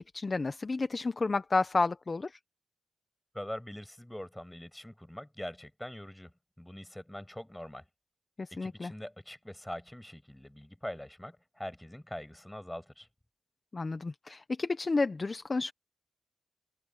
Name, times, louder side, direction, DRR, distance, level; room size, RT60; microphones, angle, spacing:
voice 1, 0.1-2.3 8.4-8.9 13.7-15.7, left 3 dB, 25° left, 0.7 m, -31 dB
voice 2, 3.3-7.8 8.5-13.1, left 1 dB, 5° left, 7.1 m, -43 dB
wide cardioid pair, 150°, 0 cm